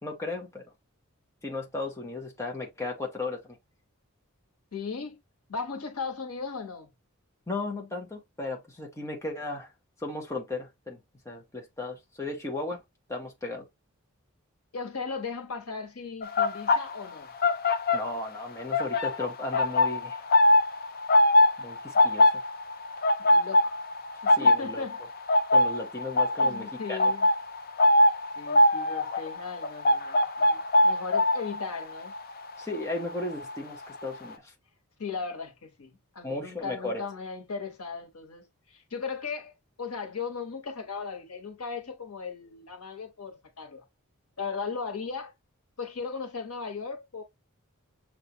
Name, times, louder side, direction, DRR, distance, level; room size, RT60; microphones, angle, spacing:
voice 1, 0.0-0.6 1.4-3.6 7.5-9.7 10.0-11.0 11.2-12.8 13.1-13.6 17.9-20.2 21.6-22.3 24.4-24.8 25.5-27.0 32.6-34.5 36.2-37.0, left 2 dB, 15° left, 0.9 m, -35 dB
voice 2, 4.7-5.2 5.5-6.9 14.7-17.3 21.9-22.1 23.2-23.7 24.2-25.0 26.4-27.3 28.3-32.1 35.0-43.8 44.4-45.3 45.8-47.2, left 5 dB, 90° left, 1.3 m, -37 dB
sound 1, 16.2-18.4 18.7-33.6 33.8-34.2, left 1 dB, 45° left, 0.5 m, -23 dB
6.7 x 2.4 x 2.8 m
head